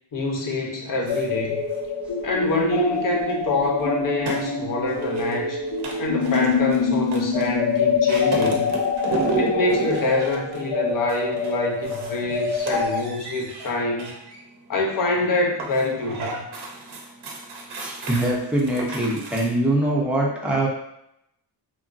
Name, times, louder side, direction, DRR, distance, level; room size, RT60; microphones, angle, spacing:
voice 1, 0.1-1.6 2.2-5.6 6.0-8.7 9.4-14.1 14.7-16.5, left 2 dB, 50° left, 0 dB, 0.6 m, -26 dB
sound 1, 1.1-13.0, left 4 dB, 75° left, 0.9 m, -25 dB
sound 2, 1.1-19.5, right 3 dB, 65° right, 0.6 m, -34 dB
voice 2, 17.8-20.7, right 1 dB, 5° right, -4 dB, 0.4 m, -23 dB
2.9 x 2.5 x 2.4 m, 0.79 s
wide cardioid pair, 165°, 42 cm